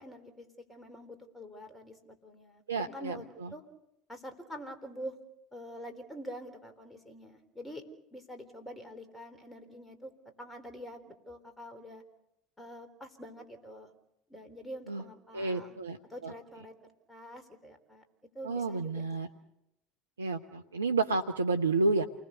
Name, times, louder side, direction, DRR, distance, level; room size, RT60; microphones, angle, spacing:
voice 1, 0.0-3.6 4.1-5.2 5.5-7.8 8.1-10.1 10.4-12.0 12.6-13.9 14.3-15.7 16.1-18.0 18.3-19.3, equal, 10° left, 7 dB, 4.0 m, -46 dB
voice 2, 2.7-3.2 14.9-15.0 15.3-16.0 16.2-16.3 18.4-19.3 20.2-22.0, right 3 dB, 85° right, 5 dB, 0.8 m, -30 dB
28.5 x 20.5 x 6.8 m, 0.85 s
figure-of-eight pair, 75°, 0 cm